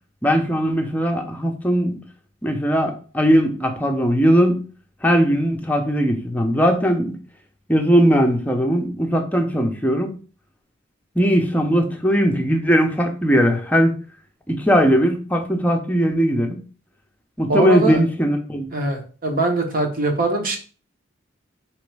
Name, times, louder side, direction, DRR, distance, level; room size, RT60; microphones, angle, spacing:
voice 1, 0.2-2.0 2.4-4.6 5.0-7.2 7.7-10.1 11.2-14.0 14.5-16.6 17.4-18.7, equal, 10° left, 0.6 m, -19 dB
voice 2, 17.5-18.0 18.7-20.6, right 2 dB, 45° right, 1.0 m, -22 dB
4.9 x 3.1 x 3.3 m
head